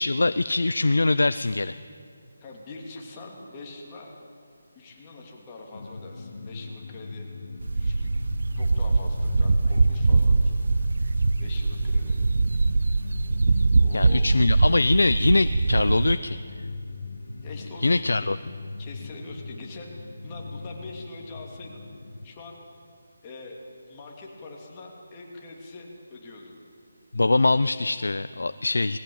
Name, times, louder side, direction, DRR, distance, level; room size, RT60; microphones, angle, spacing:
voice 1, 0.0-1.8 13.9-16.4 17.8-18.4 27.1-29.0, left 2 dB, 90° left, 13 dB, 0.5 m, -23 dB
voice 2, 2.4-4.2 4.7-7.3 7.7-8.1 8.5-10.4 11.4-12.2 13.8-14.2 17.4-18.3 18.8-19.9 20.2-21.8 22.2-22.6 23.2-23.6 23.9-26.6, left 3 dB, 20° left, -1 dB, 3.0 m, -43 dB
sound 1, 5.7-22.3, left 3 dB, 70° left, 1.3 m, -38 dB
sound 2, 7.6-16.1, right 3 dB, 70° right, 0.6 m, -22 dB
19.5 x 17.0 x 8.9 m, 2.3 s
figure-of-eight pair, 165°, 0 cm